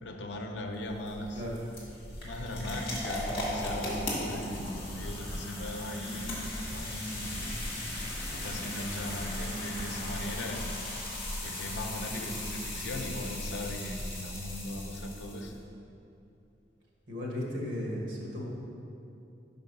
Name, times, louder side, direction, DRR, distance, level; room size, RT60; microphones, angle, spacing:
voice 1, 0.0-1.4 2.2-7.5 8.3-10.7 11.4-15.5, left 1 dB, 80° left, 3 dB, 0.7 m, -38 dB
sound 1, 0.7-15.5, left 1 dB, 30° left, 1.6 m, -37 dB
voice 2, 17.1-18.4, left 1 dB, 80° right, -3 dB, 1.4 m, -35 dB
5.3 x 5.2 x 5.3 m, 2.8 s
head